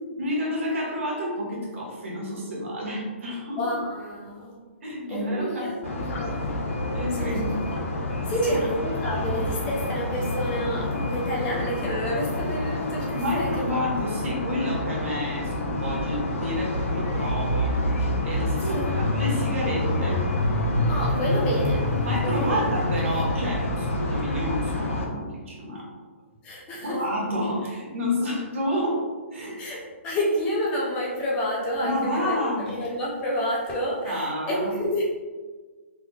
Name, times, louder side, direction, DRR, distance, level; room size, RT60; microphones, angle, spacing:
voice 1, 0.2-3.6 4.8-6.0 6.9-7.5 8.4-8.6 13.1-20.3 22.0-25.9 26.8-29.0 29.3-29.6 31.8-32.6 34.0-34.7, equal, 70° right, -3 dB, 1.2 m, -29 dB
voice 2, 3.6-4.6 5.1-6.5 7.1-7.4 8.3-13.5 18.6-19.4 20.9-21.9 22.2-23.2 26.4-27.0 29.6-35.0, equal, 15° left, -4 dB, 0.4 m, -29 dB
sound 1, 5.8-25.1, left 1 dB, 90° left, 0.7 m, -27 dB
3.4 x 3.1 x 2.2 m, 1.4 s
hypercardioid pair, 170°, 7 cm